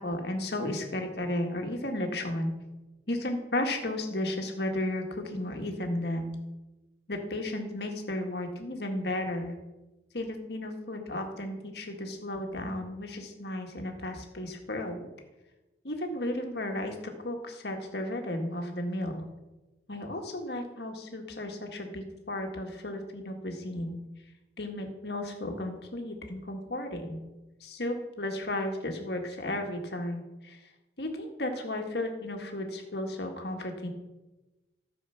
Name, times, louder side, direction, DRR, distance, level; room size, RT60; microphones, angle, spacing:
voice 1, 0.0-2.5 3.1-6.4 7.1-9.6 10.1-15.1 15.8-19.2 19.9-24.0 24.6-27.2 27.6-30.6 31.0-33.9, left 1 dB, 65° left, 3 dB, 1.9 m, -34 dB
13.5 x 6.9 x 5.8 m, 1.1 s
head